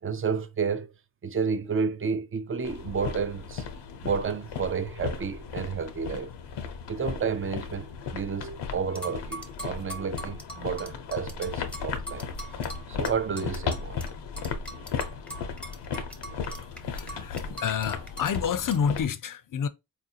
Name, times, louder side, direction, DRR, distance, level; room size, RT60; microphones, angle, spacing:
voice 1, 0.0-0.9 1.2-3.6 4.0-6.3 6.9-12.3 12.9-14.1, right 6 dB, 30° right, 0.5 m, -31 dB
sound 1, 2.6-19.0, left 6 dB, 85° left, 0.7 m, -36 dB
sound 2, 9.0-14.1 14.4-18.4 18.7-18.8, right 1 dB, 5° left, 0.7 m, -41 dB
voice 2, 16.5-19.7, left 7 dB, 50° left, 0.5 m, -29 dB
4.1 x 2.5 x 2.7 m
cardioid pair, 75°, 41 cm